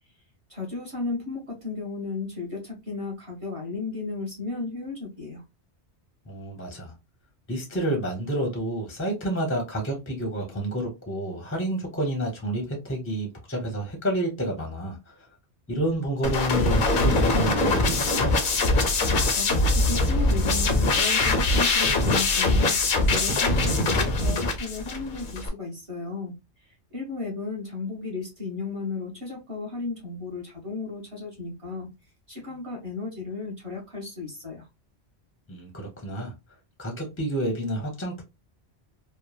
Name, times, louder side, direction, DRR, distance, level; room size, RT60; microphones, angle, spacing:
voice 1, 0.5-5.4 19.3-26.3 26.9-31.9 32.3-34.7, left 3 dB, 30° right, 1.0 m, -34 dB
voice 2, 6.3-6.9 7.5-15.1 15.7-18.3 35.5-36.3 36.8-38.2, right 1 dB, 15° left, 0.7 m, -29 dB
sound 1, 16.2-25.5, left 2 dB, 55° left, 0.6 m, -22 dB
3.1 x 2.2 x 2.3 m
omnidirectional pair, 1.1 m